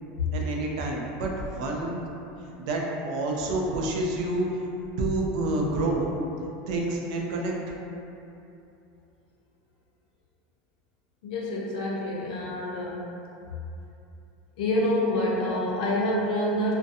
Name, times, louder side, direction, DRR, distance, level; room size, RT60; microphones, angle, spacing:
voice 1, 0.3-2.0 2.4-4.7 5.0-6.1 6.7-7.5, right 2 dB, 65° right, -1 dB, 0.4 m, -28 dB
voice 2, 11.2-13.1 14.6-16.7, left 1 dB, 75° left, -3 dB, 0.6 m, -27 dB
2.6 x 2.1 x 2.5 m, 2.8 s
supercardioid pair, 165°, 4 cm